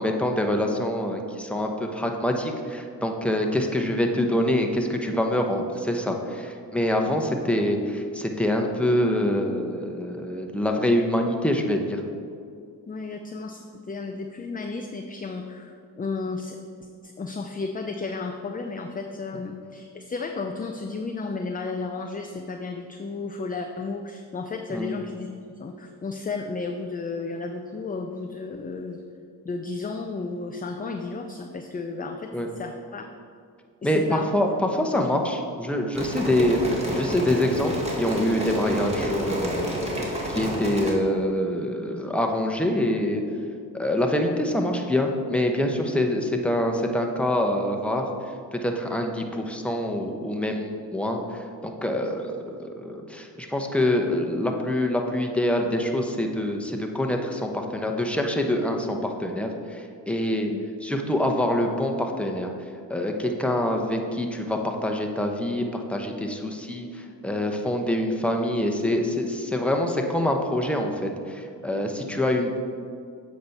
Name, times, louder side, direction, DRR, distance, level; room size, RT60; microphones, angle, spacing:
voice 1, 0.0-12.0 24.7-24.9 32.3-32.5 33.8-43.2 43.7-48.1 48.5-51.2 51.6-52.4 52.7-60.5 60.8-62.5 62.9-72.6, left 1 dB, 5° left, 2 dB, 1.0 m, -25 dB
voice 2, 12.9-25.3 25.6-29.0 29.4-33.1 33.8-34.3 34.9-35.1 60.5-60.6, left 4 dB, 20° left, 4 dB, 0.5 m, -33 dB
sound 1, 35.9-40.9, equal, 15° right, 1.8 m, -29 dB
7.8 x 5.2 x 4.2 m, 2.3 s
hypercardioid pair, 50°, 47 cm